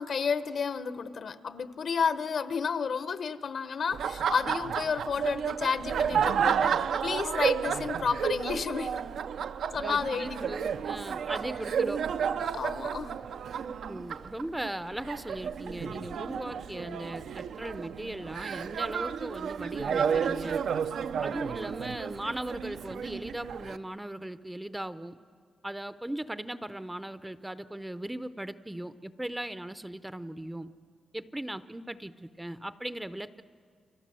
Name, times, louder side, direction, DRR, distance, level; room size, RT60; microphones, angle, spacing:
voice 1, 0.0-9.0 9.7-10.5 12.4-13.2, left 6 dB, 60° left, 13 dB, 1.0 m, -31 dB
Laughter, 3.9-23.8, right 7 dB, 75° right, 0.7 m, -32 dB
voice 2, 9.8-12.0 13.8-20.6 21.2-25.2 25.6-30.7 31.1-33.4, right 1 dB, 10° right, 13 dB, 0.6 m, -38 dB
30.0 x 24.5 x 7.6 m, 2.1 s
wide cardioid pair, 125°, 0 cm